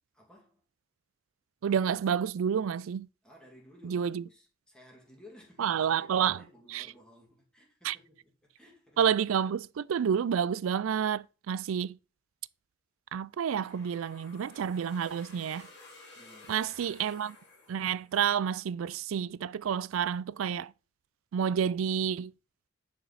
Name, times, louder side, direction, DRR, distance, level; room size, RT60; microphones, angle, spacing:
voice 1, 0.1-0.6 3.2-9.0 16.2-16.7, left 1 dB, 5° left, 2.0 m, -56 dB
voice 2, 1.6-3.1 3.8-4.2 5.6-6.4 6.7-6.9 7.8-8.0 9.0-12.0 13.1-15.7 16.5-17.4 17.7-20.7 21.3-22.3, right 8 dB, 85° right, 0.4 m, -29 dB
sound 1, 13.5-18.4, left 3 dB, 55° left, 2.8 m, -54 dB
9.4 x 4.4 x 4.1 m
head